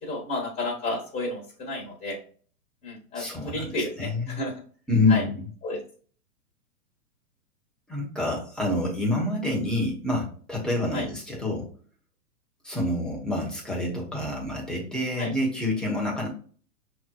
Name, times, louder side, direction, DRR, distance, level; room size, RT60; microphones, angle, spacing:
voice 1, 0.0-2.2 2.8-4.5 5.1-5.2 5.6-5.8 10.9-11.1 15.2-15.3, left 2 dB, 20° left, -3 dB, 1.2 m, -32 dB
voice 2, 3.1-4.4 4.9-5.4 7.9-11.7 12.6-16.3, left 2 dB, ahead, -3 dB, 1.0 m, -27 dB
5.7 x 3.0 x 2.3 m, 0.44 s
hypercardioid pair, 130°, 46 cm